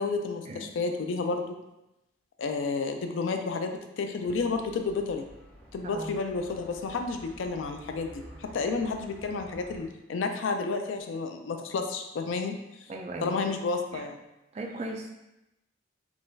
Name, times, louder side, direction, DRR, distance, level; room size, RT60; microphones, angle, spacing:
voice 1, 0.0-1.6 2.4-5.3 5.7-12.5 13.2-14.2, left 4 dB, 85° left, 5 dB, 0.4 m, -31 dB
sound 1, 4.2-9.8, equal, 5° left, 0.6 m, -51 dB
voice 2, 5.8-6.1 12.9-13.3 13.9-14.0 14.5-15.1, right 2 dB, 35° right, 2 dB, 0.4 m, -37 dB
3.6 x 2.4 x 2.6 m, 0.92 s
head